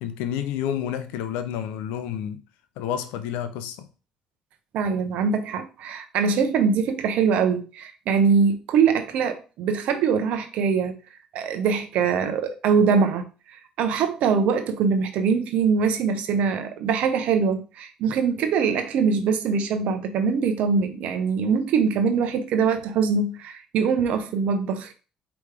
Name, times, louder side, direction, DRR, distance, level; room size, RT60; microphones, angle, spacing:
voice 1, 0.0-2.4 2.8-3.9, left 9 dB, 90° left, 0.5 m, -29 dB
voice 2, 4.7-11.0 11.3-13.3 13.8-24.9, right 5 dB, 75° right, 0.8 m, -23 dB
4.9 x 3.0 x 3.3 m
supercardioid pair, 70°, 2 cm